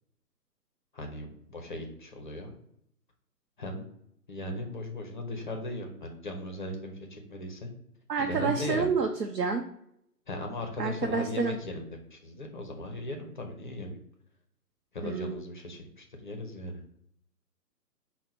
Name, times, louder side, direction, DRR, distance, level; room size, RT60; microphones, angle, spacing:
voice 1, 0.9-2.6 3.6-3.8 4.3-7.7 8.2-8.9 10.3-14.0 14.9-16.8, left 1 dB, 30° left, 3 dB, 0.6 m, -37 dB
voice 2, 8.1-9.6 10.8-11.6 15.0-15.3, right 5 dB, 80° right, 4 dB, 0.7 m, -28 dB
5.5 x 2.1 x 4.3 m, 0.74 s
figure-of-eight pair, 140°, 48 cm